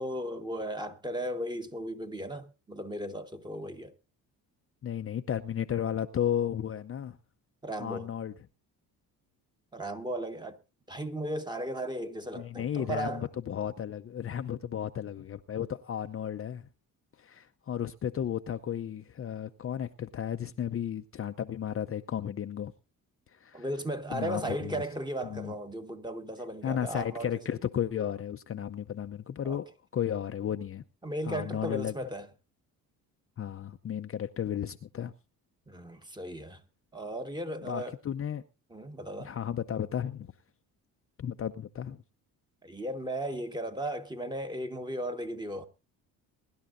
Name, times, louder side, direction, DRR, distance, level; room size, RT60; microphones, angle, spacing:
voice 1, 0.0-3.9 7.6-8.1 9.7-10.6 10.9-13.3 23.5-27.4 29.4-29.6 31.0-32.3 35.7-36.6 36.9-38.0 38.7-39.3 42.6-45.7, right 1 dB, 10° right, 1.5 m, -36 dB
voice 2, 4.8-7.2 7.8-8.3 12.4-16.6 17.2-22.7 23.3-23.6 24.1-24.8 25.2-25.5 26.6-29.7 29.9-30.8 31.3-31.9 33.4-35.1 37.6-38.4 39.2-40.3 41.2-42.0, left 9 dB, 35° left, 0.6 m, -34 dB
23.0 x 11.0 x 2.6 m
cardioid pair, 100°, 37 cm